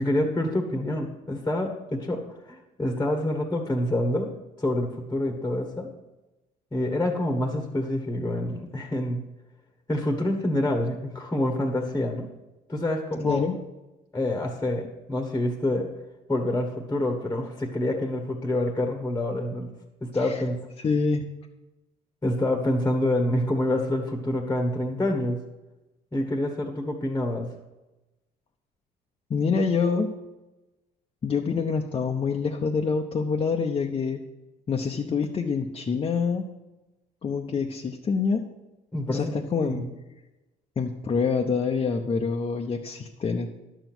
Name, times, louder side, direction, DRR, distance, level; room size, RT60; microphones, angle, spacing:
voice 1, 0.0-4.3 4.6-5.9 6.7-9.2 9.9-12.3 12.7-13.5 14.1-15.9 16.3-19.7 20.0-20.6 22.2-25.4 26.1-27.5 38.9-39.3 39.6-39.9, left 1 dB, 15° left, 3 dB, 1.3 m, -27 dB
voice 2, 13.2-13.6 20.2-20.4 20.8-21.2 29.3-30.1 31.2-34.2 34.7-36.5 37.2-38.4 39.1-39.8 40.8-43.5, left 5 dB, 30° left, 1 dB, 0.8 m, -26 dB
11.0 x 7.1 x 6.1 m, 1.0 s
cardioid pair, 110°, 17 cm